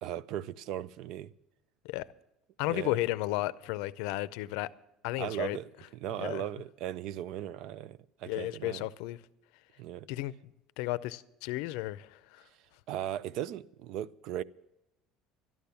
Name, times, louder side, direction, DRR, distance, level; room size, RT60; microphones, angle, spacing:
voice 1, 0.0-1.3 2.7-3.0 5.2-8.9 9.8-10.1 12.9-14.4, right 11 dB, 55° right, 0.4 m, -37 dB
voice 2, 2.6-4.7 5.0-5.6 6.2-6.4 8.3-9.2 10.1-10.5 10.8-12.4, left 18 dB, 75° left, 0.5 m, -33 dB
12.5 x 12.0 x 6.9 m
cardioid pair, 160°, 0 cm